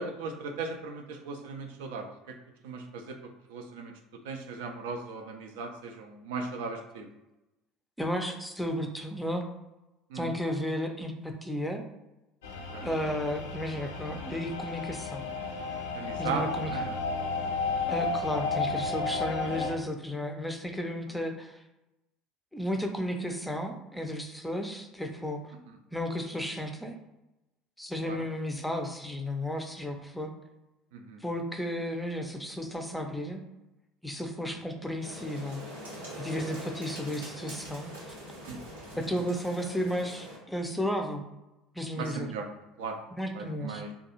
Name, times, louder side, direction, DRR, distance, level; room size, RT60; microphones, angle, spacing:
voice 1, 0.0-2.4 2.6-3.2 3.5-3.9 4.2-7.1 10.1-10.3 12.7-12.9 15.9-17.0 28.0-28.2 30.9-31.2 34.6-34.7 38.4-38.6 42.0-42.5 42.8-43.0 43.3-43.9, right 4 dB, 65° right, 4 dB, 0.3 m, -37 dB
voice 2, 8.0-9.4 10.1-11.8 12.8-15.2 16.2-16.7 17.9-21.6 22.5-25.5 25.9-27.0 27.8-30.3 31.2-33.4 34.0-35.6 36.2-37.9 39.0-41.2 41.7-42.3 43.2-43.8, equal, 5° left, 3 dB, 0.4 m, -33 dB
sound 1, 12.4-19.7, left 4 dB, 70° left, 0.4 m, -33 dB
sound 2, 35.0-40.4, equal, 80° right, 0.8 m, -43 dB
2.6 x 2.3 x 2.8 m, 0.97 s
figure-of-eight pair, 65°, 0 cm